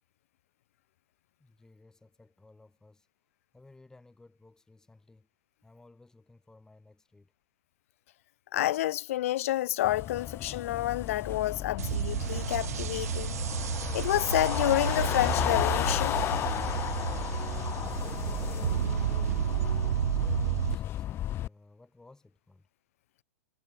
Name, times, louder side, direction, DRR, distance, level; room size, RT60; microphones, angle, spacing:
voice 1, 1.4-3.1 3.5-5.3 5.6-7.3 18.2-22.7, left 2 dB, 5° left, 7.7 m, -58 dB
voice 2, 8.5-13.3 13.9-16.2, left 14 dB, 55° left, 0.4 m, -29 dB
sound 1, 9.8-21.5, left 13 dB, 25° left, 0.9 m, -33 dB
sound 2, 11.8-20.8, right 11 dB, 65° right, 0.6 m, -31 dB
hypercardioid pair, 110°, 9 cm